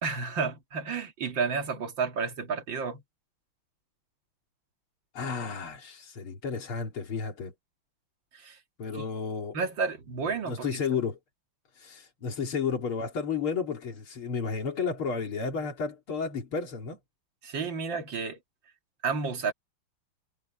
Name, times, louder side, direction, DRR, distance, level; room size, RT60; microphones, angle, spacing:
voice 1, 0.0-3.0 8.3-8.6 8.9-9.1 9.5-10.8 17.4-18.4 19.0-19.5, right 5 dB, 65° right, 2.8 m, -31 dB
voice 2, 5.1-7.5 8.8-9.6 10.5-11.2 11.8-17.0, left 5 dB, 90° left, 3.6 m, -32 dB
omnidirectional pair, 2.3 m